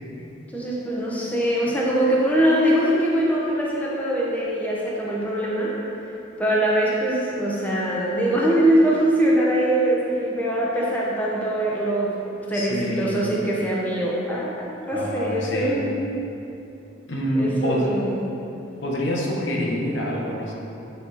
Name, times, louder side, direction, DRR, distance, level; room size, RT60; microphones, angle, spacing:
voice 1, 0.5-5.7 6.4-15.9 17.3-18.3, right 1 dB, 10° left, -5 dB, 0.8 m, -22 dB
voice 2, 12.5-13.2 14.9-15.8 17.1-17.9 18.8-20.5, equal, 70° left, -1 dB, 0.9 m, -26 dB
8.0 x 4.1 x 4.0 m, 2.8 s
head